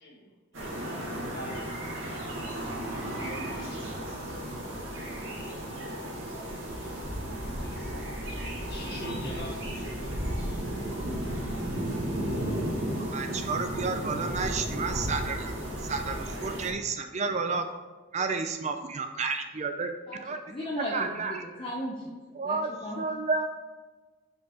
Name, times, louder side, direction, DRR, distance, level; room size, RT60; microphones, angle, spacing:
voice 1, 0.0-1.8 2.9-5.1 6.3-8.2 8.7-11.7 12.2-12.8, equal, 50° left, -3 dB, 1.8 m, -48 dB
sound 1, 0.5-16.7, right 1 dB, 70° right, 1.9 m, -34 dB
voice 2, 13.1-15.5 15.8-17.7 18.1-19.9 20.2-20.4 20.8-21.4 22.3-22.7 23.0-23.5, right 4 dB, 35° right, 7 dB, 0.4 m, -31 dB
voice 3, 20.5-22.0 22.4-23.0 23.4-23.5, equal, 25° left, -3 dB, 0.7 m, -36 dB
5.7 x 5.2 x 4.3 m, 1.3 s
head